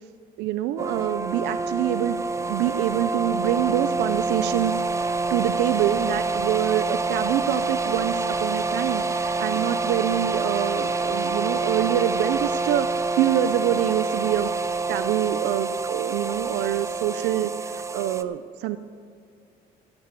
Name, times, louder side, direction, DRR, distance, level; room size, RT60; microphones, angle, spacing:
voice 1, 0.4-2.2 2.5-4.7 5.3-12.9 13.1-14.5 14.9-18.8, right 12 dB, 90° right, 12 dB, 0.5 m, -25 dB
sound 1, 0.8-18.2, right 3 dB, 15° right, 0.5 m, -27 dB
14.0 x 8.8 x 6.8 m, 2.3 s
cardioid pair, 110°, 17 cm